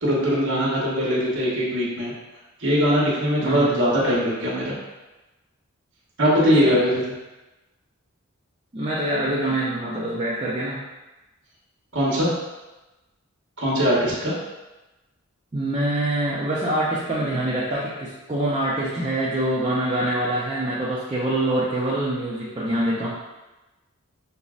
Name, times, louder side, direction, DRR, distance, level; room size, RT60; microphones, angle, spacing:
voice 1, 0.0-2.1 2.6-4.7 6.2-6.9 11.9-12.3 13.6-14.3, equal, 60° right, -5 dB, 1.0 m, -21 dB
voice 2, 3.4-3.8 6.5-6.8 8.7-10.8 15.5-23.1, right 1 dB, 25° right, -8 dB, 0.4 m, -25 dB
5.3 x 2.0 x 2.4 m, 1.1 s
head